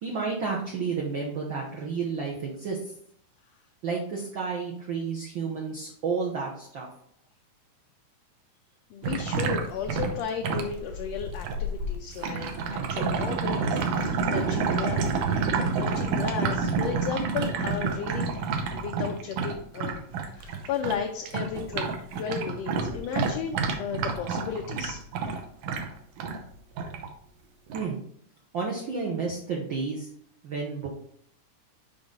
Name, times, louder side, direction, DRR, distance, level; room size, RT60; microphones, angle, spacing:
voice 1, 0.0-2.9 3.8-6.9 27.7-28.0 28.5-30.1 30.4-30.9, right 5 dB, 65° right, -3 dB, 1.2 m, -31 dB
voice 2, 8.9-15.1 15.6-18.3 18.7-21.9 22.2-25.0, left 7 dB, 80° left, 3 dB, 1.4 m, -34 dB
sound 1, 9.0-21.0 21.3-26.4 26.8-27.1 27.7-27.9, right 4 dB, 80° right, 2.3 m, -29 dB
6.0 x 5.2 x 3.7 m, 0.66 s
omnidirectional pair, 3.5 m